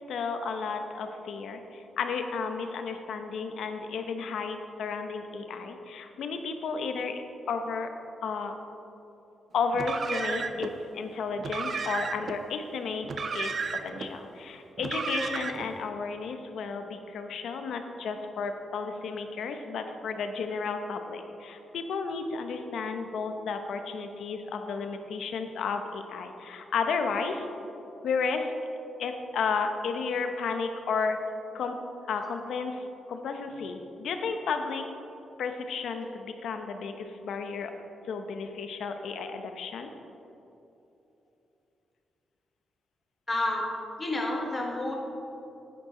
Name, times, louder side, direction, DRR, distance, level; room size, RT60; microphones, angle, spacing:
voice 1, 0.1-7.2 7.5-7.9 8.2-8.5 9.5-13.1 13.3-27.5 28.0-28.5 29.0-31.2 31.5-31.8 32.1-34.8 35.4-37.7 38.1-39.9, left 5 dB, 70° left, 6 dB, 0.7 m, -33 dB
Car, 9.7-10.7 11.4-12.4 13.0-14.1 14.8-15.7, right 5 dB, 40° right, 0.5 m, -33 dB
voice 2, 43.3-43.7 44.0-44.9, left 2 dB, 20° left, -1 dB, 1.3 m, -29 dB
10.0 x 9.0 x 3.8 m, 2.9 s
wide cardioid pair, 160°, 0 cm